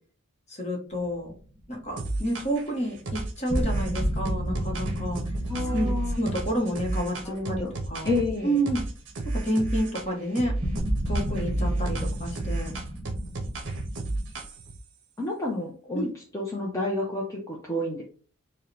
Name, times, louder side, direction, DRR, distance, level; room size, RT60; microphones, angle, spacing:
voice 1, 0.5-1.3 1.7-5.2 5.7-8.1 8.4-8.8 9.3-10.5 11.1-12.7 15.9-16.1, right 1 dB, 30° left, 1 dB, 1.0 m, -29 dB
sound 1, 0.9-1.9 3.5-8.6 8.8-9.1 10.6-14.3, equal, 30° right, 1.4 m, -32 dB
sound 2, 2.0-2.7 3.1-8.3 8.7-10.1 10.4-14.8, right 2 dB, 55° right, 0.6 m, -32 dB
voice 2, 5.5-6.2 7.2-7.7 8.0-8.6 15.2-18.0, left 2 dB, 15° left, -4 dB, 0.5 m, -30 dB
4.5 x 2.2 x 3.2 m, 0.41 s
head